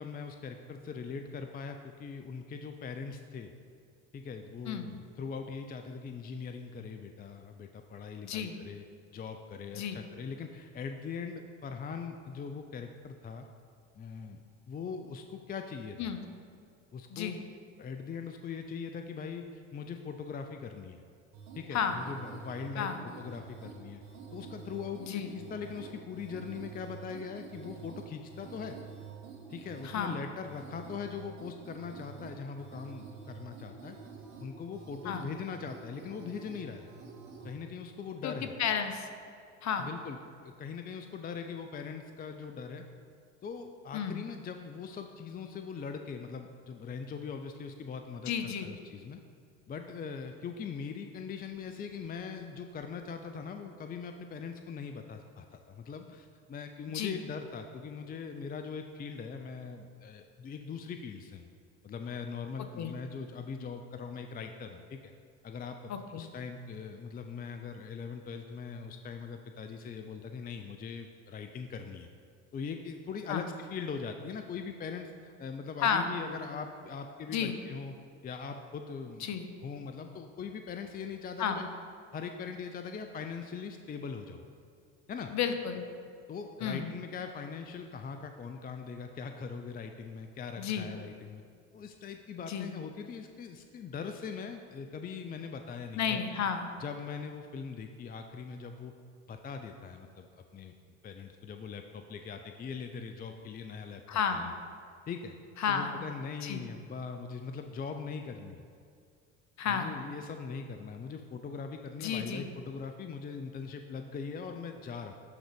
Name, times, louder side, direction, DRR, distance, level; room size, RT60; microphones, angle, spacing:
voice 1, 0.0-3.5 4.1-8.8 9.1-13.5 14.0-16.1 16.9-17.4 17.8-21.0 21.6-24.0 24.3-28.8 29.5-34.0 34.4-36.9 37.4-38.5 39.8-42.8 43.4-49.2 49.7-61.5 61.8-65.1 65.4-65.9 66.2-72.1 72.5-77.9 78.2-81.7 82.1-84.4 85.1-85.3 86.3-91.4 91.7-96.2 96.8-98.9 99.3-100.3 100.5-100.7 101.0-104.0 104.3-104.5 105.1-105.4 105.7-108.6 109.7-115.1, left 5 dB, 25° left, 6 dB, 0.5 m, -41 dB
voice 2, 8.2-8.6 9.7-10.0 16.0-16.2 17.1-17.4 21.7-22.0 22.8-23.0 25.0-25.3 29.8-30.2 35.0-35.3 38.2-38.3 38.6-39.1 39.6-39.9 43.9-44.2 48.3-48.7 56.9-57.2 62.8-62.9 65.9-66.2 73.3-73.4 75.8-76.1 77.3-77.6 79.2-79.5 81.4-81.6 85.3-85.8 86.6-86.9 90.6-90.9 92.4-92.7 96.0-96.7 104.1-104.5 105.6-106.0 106.4-106.7 109.6-110.0 112.0-112.5, left 7 dB, 45° left, 7 dB, 0.9 m, -32 dB
sound 1, 21.3-37.5, right 6 dB, 70° right, 1.9 m, -48 dB
11.0 x 3.9 x 5.1 m, 2.3 s
hypercardioid pair, 70°, 38 cm